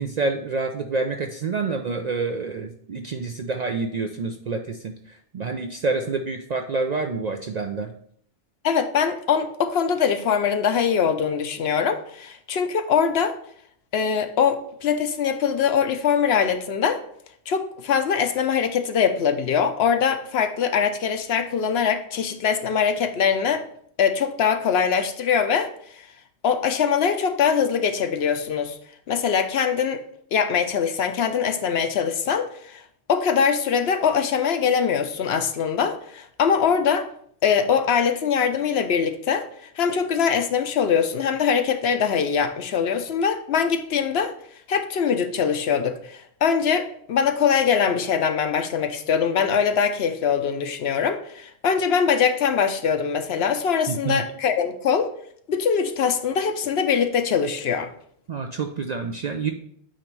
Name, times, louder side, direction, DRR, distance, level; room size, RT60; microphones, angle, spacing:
voice 1, 0.0-4.9 5.3-7.9 53.9-54.2 58.3-59.5, right 4 dB, 55° right, 5 dB, 0.4 m, -27 dB
voice 2, 8.6-13.3 13.9-17.0 17.5-23.6 24.0-26.0 26.4-28.8 29.1-30.0 30.3-32.8 33.1-37.1 37.4-39.5 39.8-44.3 44.7-55.1 55.5-57.9, left 7 dB, 65° left, 9 dB, 0.8 m, -22 dB
8.8 x 3.0 x 4.5 m, 0.64 s
omnidirectional pair, 1.2 m